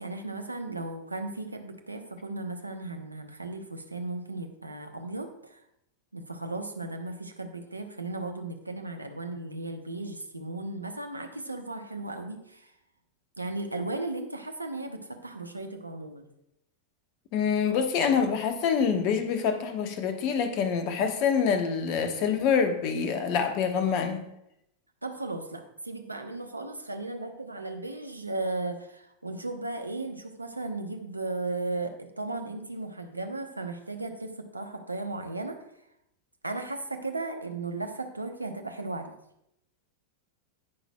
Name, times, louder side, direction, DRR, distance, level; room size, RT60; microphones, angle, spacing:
voice 1, 0.0-5.6 6.1-12.7 13.4-16.3 25.0-35.6 36.4-39.1, right 2 dB, 85° right, 6 dB, 0.8 m, -36 dB
voice 2, 17.3-24.3, left 6 dB, 45° left, 7 dB, 1.1 m, -26 dB
17.0 x 5.9 x 2.2 m, 0.79 s
figure-of-eight pair, 90°, 0 cm